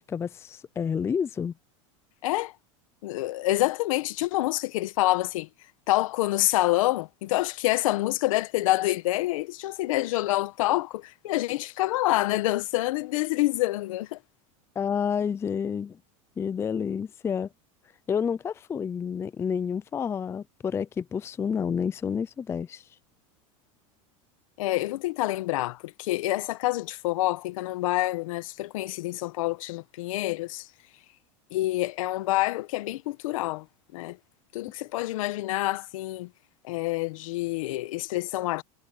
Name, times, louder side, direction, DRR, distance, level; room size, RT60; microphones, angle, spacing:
voice 1, 0.0-1.5 14.8-16.0 16.4-17.5 18.1-22.8, left 7 dB, 15° left, 0.4 m, -29 dB
voice 2, 2.2-2.5 3.0-5.5 5.9-14.2 24.6-30.7 31.5-33.6 33.9-34.2 34.5-36.3 36.6-38.6, left 18 dB, 80° left, 1.2 m, -27 dB
supercardioid pair, 130°, 17 cm